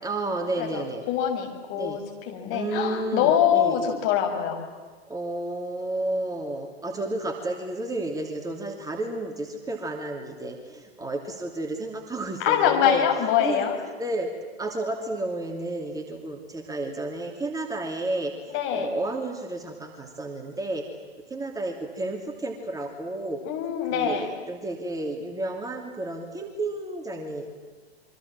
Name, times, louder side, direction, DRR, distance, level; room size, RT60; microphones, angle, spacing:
voice 1, 0.0-1.1 1.7-2.0 2.5-3.8 5.1-13.7 14.0-14.3 14.6-20.8 21.3-23.4 23.9-27.5, right 2 dB, 10° right, 2 dB, 2.9 m, -31 dB
voice 2, 0.6-2.0 2.3-4.7 12.4-13.8 18.5-18.9 23.5-24.3, left 9 dB, 40° left, 2 dB, 7.1 m, -24 dB
27.5 x 24.5 x 7.6 m, 1.5 s
figure-of-eight pair, 100°, 32 cm